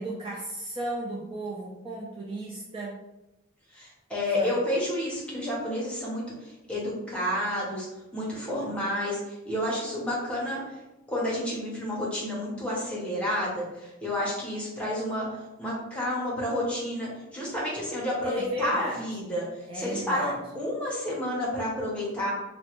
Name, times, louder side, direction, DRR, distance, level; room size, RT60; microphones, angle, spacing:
voice 1, 0.0-3.0 4.4-4.6 18.2-19.0 19.7-20.4, right 1 dB, 25° right, -3 dB, 0.3 m, -35 dB
voice 2, 3.7-7.9 8.1-10.7 11.1-19.5 19.7-22.3, left 1 dB, 5° left, -5 dB, 0.8 m, -30 dB
3.0 x 2.1 x 2.9 m, 0.96 s
head